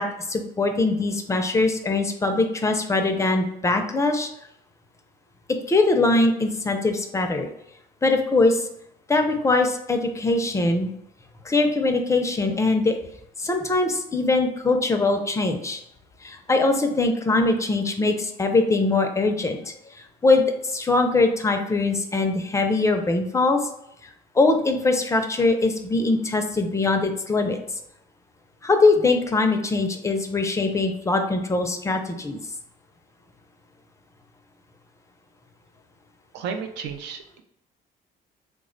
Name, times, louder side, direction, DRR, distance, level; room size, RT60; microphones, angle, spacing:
voice 1, 0.0-4.3 5.7-7.5 8.0-8.7 9.1-10.9 11.4-13.0 13.4-15.8 16.2-23.6 24.0-27.6 28.6-32.4, left 3 dB, 15° left, 5 dB, 0.4 m, -22 dB
voice 2, 36.3-37.4, right 6 dB, 85° right, 6 dB, 0.5 m, -33 dB
3.3 x 2.1 x 3.7 m, 0.77 s
cardioid pair, 110°, 17 cm